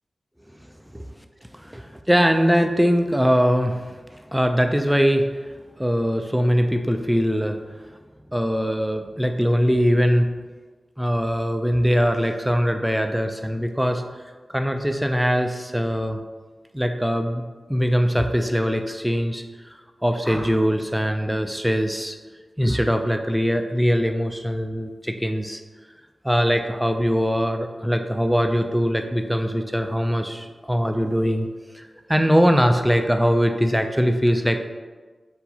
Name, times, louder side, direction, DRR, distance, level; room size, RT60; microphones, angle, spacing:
voice 1, 1.6-4.0 4.3-5.3 5.8-7.6 8.3-10.3 11.0-14.0 14.5-16.2 16.7-17.4 17.7-19.4 20.0-22.2 22.6-25.6 26.2-31.5 31.7-34.7, equal, 5° right, 6 dB, 0.3 m, -21 dB
sound 1, 20.2-20.8 22.6-22.9 23.2-23.6, equal, 25° left, 1.2 m, -39 dB
4.5 x 3.9 x 2.8 m, 1.3 s
cardioid pair, 50°, 0 cm